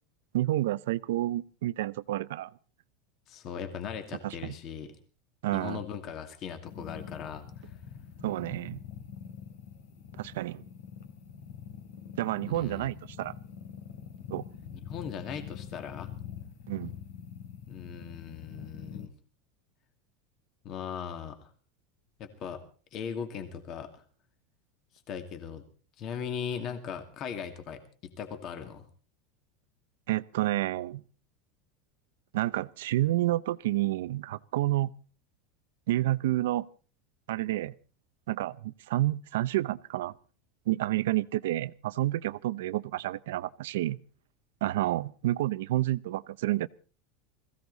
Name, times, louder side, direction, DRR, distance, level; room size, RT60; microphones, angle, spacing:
voice 1, 0.3-2.5 4.2-4.5 5.4-5.8 8.2-8.8 10.1-10.6 12.2-13.3 14.3-14.5 16.7-16.9 30.1-31.0 32.3-34.9 35.9-36.7 37.3-37.7 38.3-40.1 40.7-44.0 44.6-46.7, right 15 dB, 90° right, 0.7 m, -29 dB
voice 2, 3.3-4.9 5.5-7.7 12.4-12.9 14.7-16.1 17.7-19.1 20.6-21.5 22.2-22.6 22.9-24.0 25.1-25.6 26.0-28.9, left 7 dB, 35° left, 2.3 m, -39 dB
sound 1, 6.6-19.1, left 8 dB, 70° left, 3.5 m, -45 dB
21.0 x 16.0 x 4.1 m
supercardioid pair, 170°, 0 cm